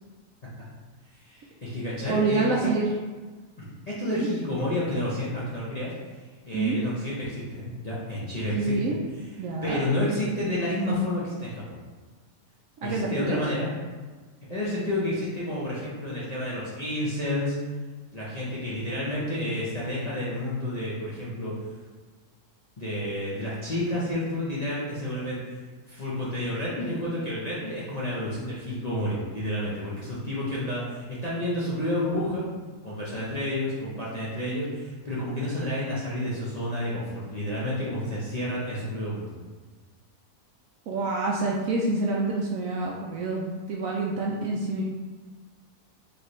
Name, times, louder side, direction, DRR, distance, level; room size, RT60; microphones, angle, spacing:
voice 1, 1.2-2.7 3.6-5.9 6.5-9.4 9.6-11.8 12.8-13.7 14.5-17.6 18.1-21.5 22.8-25.4 25.9-32.5 32.8-39.4, left 1 dB, 35° left, -8 dB, 0.6 m, -30 dB
voice 2, 2.1-2.9 4.1-4.3 6.5-6.8 8.5-9.0 9.4-9.8 12.8-13.4 40.9-44.8, right 3 dB, 70° right, -2 dB, 0.8 m, -27 dB
4.7 x 3.3 x 3.1 m, 1.4 s
omnidirectional pair, 1.8 m